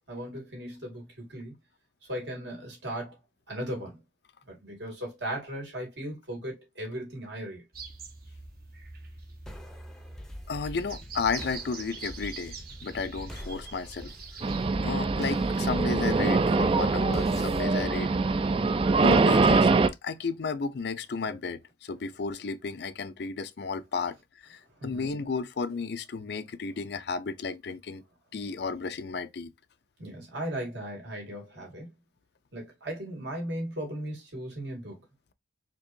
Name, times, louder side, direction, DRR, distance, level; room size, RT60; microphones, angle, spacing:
voice 1, 0.1-1.5 2.1-3.2 3.5-4.0 4.5-7.6 24.8-25.1 30.0-31.9 32.5-35.0, right 1 dB, 75° right, 2.4 m, -37 dB
sound 1, 7.7-14.6, right 4 dB, 55° right, 1.0 m, -44 dB
sound 2, 9.5-18.9, equal, 5° left, 0.6 m, -45 dB
voice 2, 10.5-12.6 12.8-14.1 14.8-18.1 19.0-19.7 20.0-24.1 24.4-28.0 28.3-29.5, left 4 dB, 65° left, 0.5 m, -33 dB
sound 3, 14.4-19.9, right 3 dB, 30° right, 0.3 m, -23 dB
4.5 x 2.9 x 2.6 m
head